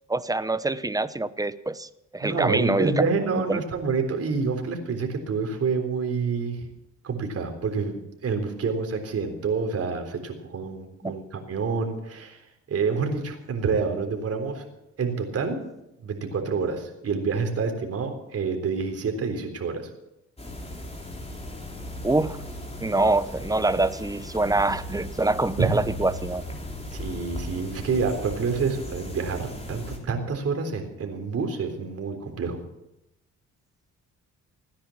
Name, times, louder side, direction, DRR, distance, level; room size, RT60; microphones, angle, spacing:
voice 1, 0.1-3.6 11.0-11.1 22.0-22.4 22.8-26.4, right 2 dB, 10° right, 15 dB, 0.8 m, -25 dB
voice 2, 2.2-6.7 7.0-12.4 12.7-14.7 15.0-15.6 16.0-19.8 25.6-25.7 26.9-32.6, right 5 dB, 50° right, 4 dB, 3.8 m, -28 dB
sound 1, 20.4-30.0, left 1 dB, 20° left, 3.7 m, -37 dB
17.0 x 10.0 x 7.2 m, 0.87 s
cardioid pair, 90°, 30 cm